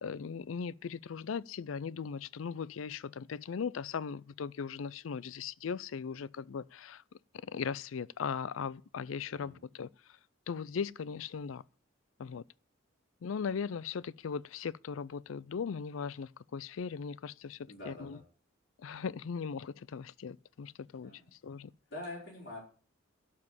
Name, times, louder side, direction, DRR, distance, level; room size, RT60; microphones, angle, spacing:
voice 1, 0.0-7.0 7.4-9.9 10.5-11.6 12.2-12.4 13.2-18.2 18.8-21.1 21.4-21.7, left 6 dB, 90° left, 0.4 m, -38 dB
voice 2, 17.7-18.2 21.0-21.3 21.9-22.6, left 2 dB, 55° left, 5.0 m, -45 dB
12.0 x 5.5 x 8.0 m
head